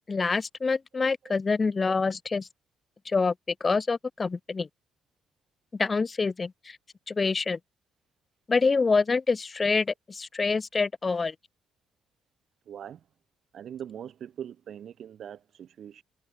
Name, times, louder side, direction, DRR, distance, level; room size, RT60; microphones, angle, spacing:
voice 1, 0.1-2.5 3.0-3.3 3.6-4.7 5.7-6.8 7.1-7.6 8.5-11.3, left 4 dB, 30° left, 1.7 m, -26 dB
voice 2, 12.7-13.0 13.5-16.0, right 9 dB, 65° right, 2.9 m, -41 dB
cardioid pair, 90°, 0 cm